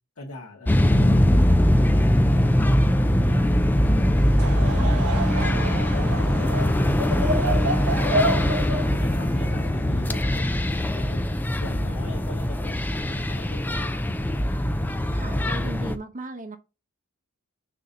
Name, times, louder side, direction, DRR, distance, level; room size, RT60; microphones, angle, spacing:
voice 1, 0.1-11.2 11.6-14.3, left 2 dB, 75° left, 1.8 m, -42 dB
sound 1, 0.7-16.0, left 1 dB, 10° left, 0.4 m, -21 dB
Laughter / Crowd, 4.2-10.6, right 1 dB, 80° right, 1.4 m, -29 dB
voice 2, 5.5-5.9 8.4-8.6 15.1-16.6, right 2 dB, 35° right, 0.8 m, -38 dB
6.4 x 2.8 x 5.2 m
head